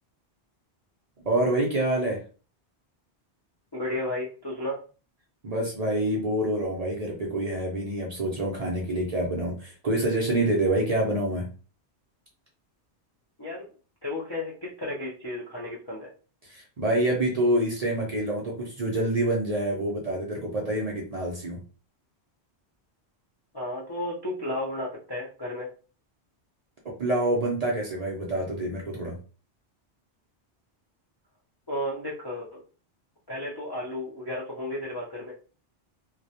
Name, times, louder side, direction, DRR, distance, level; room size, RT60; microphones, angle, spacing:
voice 1, 1.3-2.2 5.4-11.5 16.4-21.6 26.8-29.2, right 1 dB, 50° right, -2 dB, 0.5 m, -27 dB
voice 2, 3.7-4.8 13.4-13.7 14.0-16.1 23.5-25.7 31.7-32.6 33.3-35.3, left 1 dB, 40° left, -5 dB, 0.3 m, -33 dB
2.2 x 2.1 x 2.7 m, 0.36 s
omnidirectional pair, 1.1 m